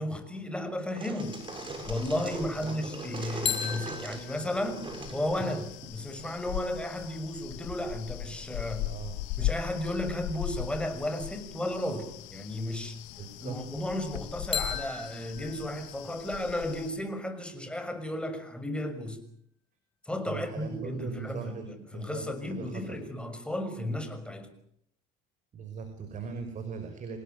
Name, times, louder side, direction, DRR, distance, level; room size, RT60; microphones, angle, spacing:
voice 1, 0.0-1.4 1.9-4.8 5.1-8.9 9.4-13.0 13.4-19.2 20.0-24.5, left 1 dB, 5° left, 8 dB, 6.3 m, -34 dB
sound 1, 0.8-6.3, right 3 dB, 25° right, 7.4 m, -41 dB
sound 2, 1.2-16.9, left 15 dB, 80° left, 2.3 m, -40 dB
sound 3, 3.4-7.3 14.5-18.4, left 7 dB, 30° left, 7.0 m, -39 dB
voice 2, 8.5-9.4 13.2-13.6 20.3-23.0 25.5-27.2, right 5 dB, 40° right, 7 dB, 5.4 m, -40 dB
27.5 x 19.5 x 9.4 m, 0.69 s
cardioid pair, 110°, 19 cm